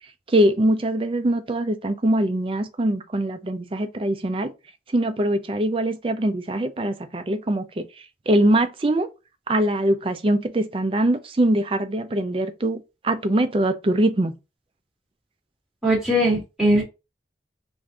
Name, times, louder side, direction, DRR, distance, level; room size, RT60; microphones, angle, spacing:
voice 1, 0.3-4.5 4.9-7.9 8.3-9.1 9.5-14.3, right 1 dB, 30° right, 0.4 m, -22 dB
voice 2, 15.8-16.8, equal, 5° right, 1.0 m, -20 dB
3.3 x 2.6 x 3.6 m
head